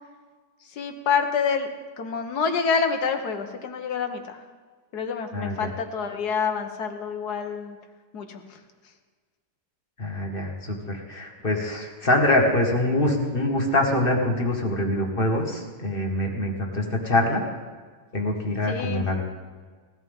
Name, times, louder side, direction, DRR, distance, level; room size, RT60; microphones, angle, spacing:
voice 1, 0.7-1.7 2.0-4.4 4.9-7.8 8.1-8.4 18.7-19.0, left 6 dB, 75° left, 6 dB, 1.8 m, -27 dB
voice 2, 5.3-5.7 10.0-17.4 18.1-19.2, left 1 dB, 35° left, 0 dB, 2.0 m, -24 dB
18.5 x 14.0 x 3.7 m, 1.5 s
omnidirectional pair, 1.7 m